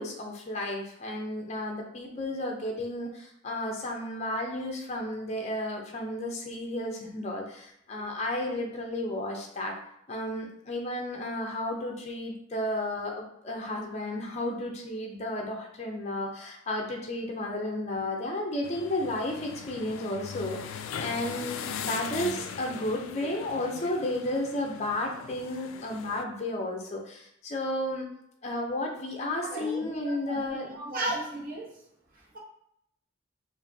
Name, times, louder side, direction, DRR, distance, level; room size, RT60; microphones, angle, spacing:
voice 1, 0.0-9.8 10.1-28.1 28.4-30.8, left 1 dB, 35° left, 1 dB, 0.5 m, -33 dB
sound 1, 18.6-26.2, left 7 dB, 80° left, 0.3 m, -39 dB
voice 2, 29.4-31.8, right 2 dB, 45° right, -5 dB, 1.2 m, -35 dB
4.7 x 2.6 x 2.7 m, 0.74 s
head